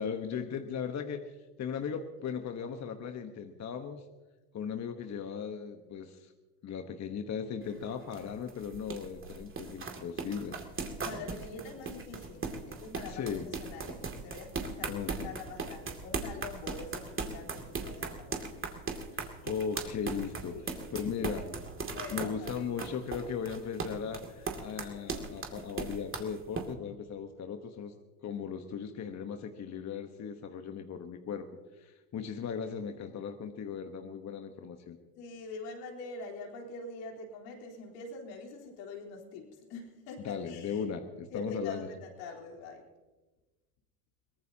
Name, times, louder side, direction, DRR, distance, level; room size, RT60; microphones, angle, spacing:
voice 1, 0.0-1.3 1.6-4.1 4.5-6.3 6.6-10.6 13.0-13.5 14.9-15.3 19.1-20.5 20.9-21.5 22.1-27.9 28.2-31.5 31.7-35.0 40.2-41.9, left 7 dB, 35° left, 6 dB, 1.2 m, -37 dB
sound 1, 7.6-26.7, right 4 dB, 25° right, 2.4 m, -38 dB
voice 2, 11.0-18.5 20.5-20.8 21.3-21.5 21.9-22.7 35.2-40.8 41.3-42.9, left 3 dB, 70° left, 0 dB, 3.9 m, -45 dB
23.0 x 18.5 x 2.8 m, 1.2 s
supercardioid pair, 95°, 46 cm